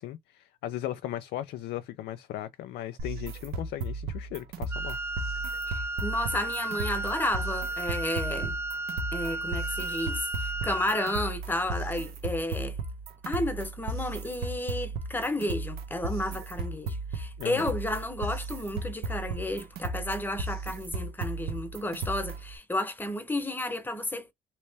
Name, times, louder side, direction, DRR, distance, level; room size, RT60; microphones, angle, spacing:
voice 1, 0.0-5.0 17.4-17.7, left 13 dB, 75° left, 0.5 m, -37 dB
sound 1, 3.0-22.6, right 2 dB, 70° right, 1.0 m, -35 dB
Wind instrument woodwind instrument, 4.7-11.4, right 2 dB, 15° right, 0.3 m, -34 dB
voice 2, 5.7-8.6 9.1-12.8 13.3-24.3, left 1 dB, 10° left, 0.9 m, -32 dB
3.1 x 2.9 x 3.4 m
cardioid pair, 110°, 17 cm